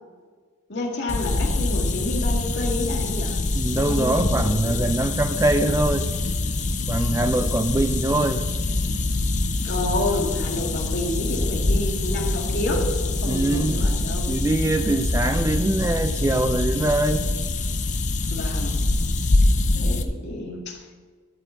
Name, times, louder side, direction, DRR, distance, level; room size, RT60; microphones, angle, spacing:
voice 1, 0.7-3.4 3.7-4.8 9.6-14.3 18.3-18.8 19.8-21.0, left 1 dB, 50° left, -1 dB, 2.0 m, -29 dB
sound 1, 1.1-20.0, left 2 dB, 35° left, 0.7 m, -24 dB
voice 2, 3.5-6.1 6.9-8.4 13.3-13.9 14.3-17.3, right 2 dB, 15° right, 8 dB, 0.3 m, -23 dB
12.0 x 4.8 x 7.9 m, 1.5 s
head